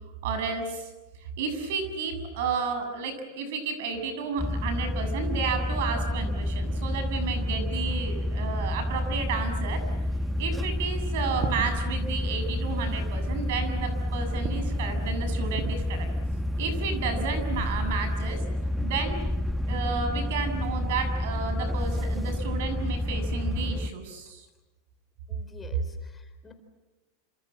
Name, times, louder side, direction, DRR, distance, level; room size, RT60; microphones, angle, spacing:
voice 1, 0.2-0.9 1.4-9.8 10.4-16.1 16.6-18.4 18.8-19.2 19.7-24.5, right 5 dB, 70° right, 8 dB, 7.2 m, -32 dB
sound 1, 4.4-23.9, left 1 dB, ahead, 1.1 m, -29 dB
sound 2, 9.1-18.4, right 7 dB, 45° right, 2.2 m, -44 dB
voice 2, 25.3-26.5, left 3 dB, 15° left, 6 dB, 4.0 m, -48 dB
27.5 x 27.0 x 7.6 m, 1.1 s
supercardioid pair, 140°, 0 cm